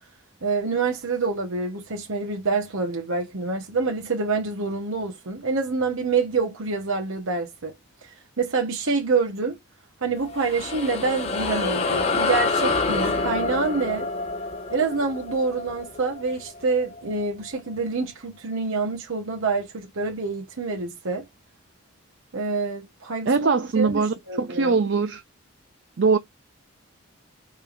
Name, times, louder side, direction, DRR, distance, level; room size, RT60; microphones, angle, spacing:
voice 1, 0.4-7.7 8.0-9.6 10.0-14.1 14.7-21.3 22.3-23.5 23.7-24.7, right 4 dB, 85° right, 1.1 m, -26 dB
sound 1, 10.2-17.0, left 3 dB, 30° left, 1.1 m, -27 dB
voice 2, 23.3-25.2 26.0-26.2, right 4 dB, 60° right, 0.5 m, -22 dB
5.5 x 2.5 x 2.5 m
head